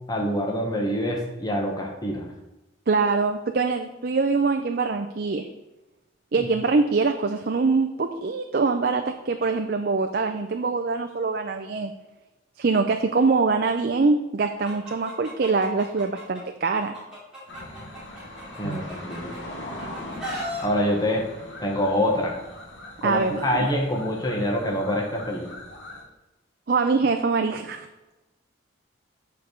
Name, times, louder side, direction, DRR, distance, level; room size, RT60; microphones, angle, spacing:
voice 1, 0.1-2.3 6.4-6.5 18.6-19.3 20.6-21.2 21.6-22.4 23.0-25.5, equal, 20° left, 0 dB, 1.1 m, -25 dB
voice 2, 2.9-5.5 6.3-11.9 12.6-17.0 18.6-18.8 23.0-23.7 26.7-27.9, right 4 dB, 50° right, 5 dB, 0.5 m, -24 dB
Chicken rooster, 14.6-16.4 16.8-19.4 19.8-20.6, equal, 5° right, 2.8 m, -36 dB
sound 1, 17.5-26.0, left 1 dB, 65° left, 2.1 m, -41 dB
8.1 x 4.6 x 6.4 m, 1.0 s
head